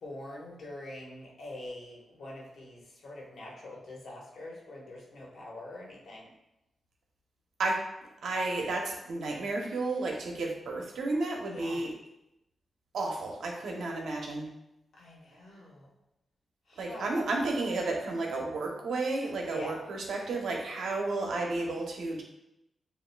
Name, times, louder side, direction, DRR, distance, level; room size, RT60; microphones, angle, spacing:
voice 1, 0.0-6.3 11.5-11.8 15.0-15.9 16.7-17.1 19.5-19.8, left 1 dB, 70° left, -3 dB, 1.3 m, -44 dB
voice 2, 8.2-11.9 12.9-14.5 16.8-22.2, right 2 dB, 85° right, 1 dB, 0.8 m, -32 dB
6.8 x 2.6 x 2.3 m, 0.89 s
cardioid pair, 75°, 0 cm